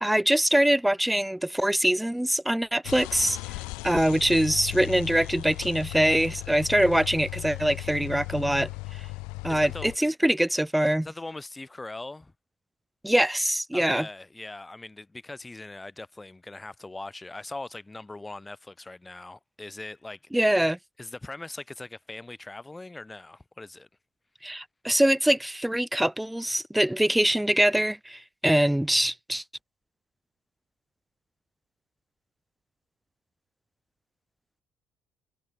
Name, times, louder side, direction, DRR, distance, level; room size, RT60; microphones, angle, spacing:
voice 1, 0.0-3.4 3.8-8.7 9.4-11.1 13.0-14.1 20.3-20.8 24.4-29.4, right 1 dB, 5° right, 0.5 m, -23 dB
sound 1, 2.8-10.0, left 26 dB, 65° left, 1.2 m, -37 dB
voice 2, 9.5-10.1 11.0-12.3 13.7-20.6 21.0-23.9, left 2 dB, 15° left, 0.8 m, -41 dB
figure-of-eight pair, 50°, 0 cm